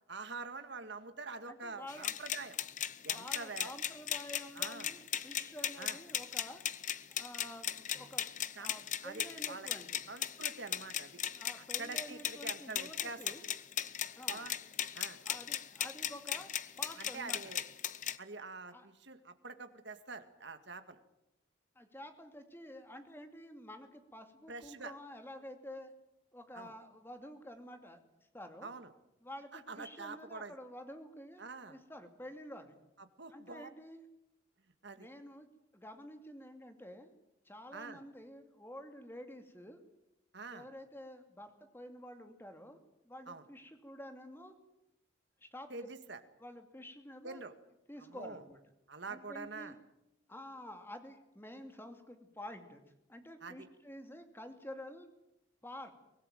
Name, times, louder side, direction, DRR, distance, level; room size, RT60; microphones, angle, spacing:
voice 1, 0.1-2.6 3.0-3.7 4.6-4.9 5.8-6.0 8.6-8.7 9.0-9.7 10.1-11.2 11.8-13.3 14.3-14.6 14.9-15.2 17.0-17.6 18.2-21.0 24.5-24.9 26.5-26.7 28.6-28.9 29.5-30.5 31.4-31.8 33.0-33.7 34.8-35.1 37.7-38.0 40.3-40.7 43.3-43.4 45.7-46.2 47.2-47.5 48.0-48.4 48.9-49.7 53.4-53.7, right 4 dB, 55° right, 9 dB, 2.0 m, -46 dB
voice 2, 1.5-2.1 3.0-6.6 7.1-8.3 8.6-10.0 11.3-13.4 14.2-14.5 15.2-16.5 16.8-17.5 18.7-18.9 21.8-25.9 26.3-28.0 28.3-28.7 29.2-31.4 31.7-32.8 33.3-34.0 35.0-35.5 35.7-37.1 37.4-39.8 40.5-42.8 43.0-44.5 45.4-45.7 46.4-47.4 47.9-48.6 49.1-49.8 50.3-52.8 53.1-55.1 55.6-55.9, left 1 dB, 10° left, 6 dB, 2.5 m, -49 dB
sound 1, 1.9-18.2, left 10 dB, 40° left, 0.8 m, -38 dB
24.5 x 17.5 x 9.2 m, 0.86 s
head